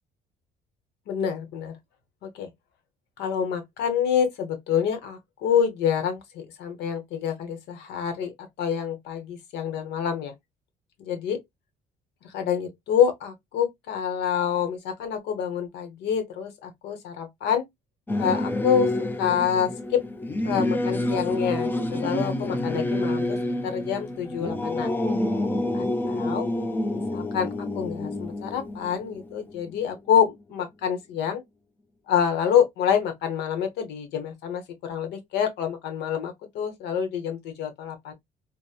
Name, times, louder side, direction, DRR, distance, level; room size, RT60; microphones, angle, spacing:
voice 1, 1.1-1.8 2.2-2.5 3.2-10.3 11.0-11.4 12.2-17.6 18.1-18.9 19.2-20.0 20.4-23.4 23.6-25.1 25.7-26.5 26.9-31.4 32.1-38.1, left 8 dB, 80° left, 0.9 m, -27 dB
Singing / Musical instrument, 18.1-29.9, left 1 dB, 10° left, 0.4 m, -28 dB
2.9 x 2.0 x 2.3 m
cardioid pair, 110°, 17 cm